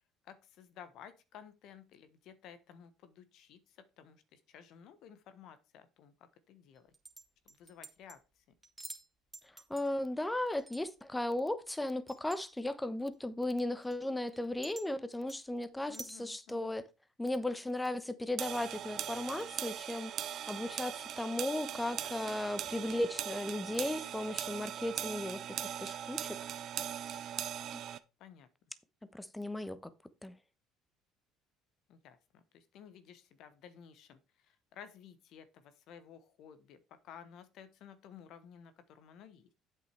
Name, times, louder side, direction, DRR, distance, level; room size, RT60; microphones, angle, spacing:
voice 1, 0.2-6.9 7.4-8.4 15.9-16.7 28.2-28.5 31.9-39.5, left 8 dB, 65° left, 1.2 m, -55 dB
sound 1, 6.7-8.2 8.6-9.1 9.3-9.9 10.6-10.8 11.1-11.2 11.7-11.8 12.1-12.4 13.1-13.2 13.8-14.0 14.3-14.9 15.2-15.4 15.9-16.2, right 2 dB, 10° right, 2.3 m, -49 dB
voice 2, 9.4-16.9 17.2-20.1 20.5-26.4 29.1-29.9 30.2-30.4, left 1 dB, 10° left, 1.1 m, -36 dB
sound 2, 18.4-28.0, right 10 dB, 60° right, 0.7 m, -40 dB
8.2 x 6.3 x 4.6 m
supercardioid pair, 85°, 0 cm